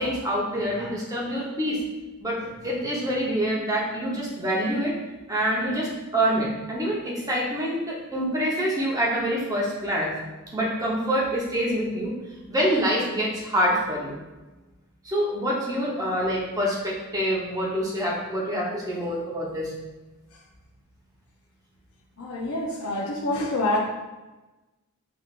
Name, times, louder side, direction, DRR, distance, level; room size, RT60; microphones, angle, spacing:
voice 1, 0.0-1.8 2.2-4.9 5.3-10.1 10.5-12.1 12.5-14.2 15.0-19.7, equal, 15° right, -5 dB, 0.9 m, -26 dB
voice 2, 22.2-23.8, left 2 dB, 80° left, -2 dB, 0.6 m, -26 dB
5.8 x 3.3 x 2.4 m, 1.1 s
head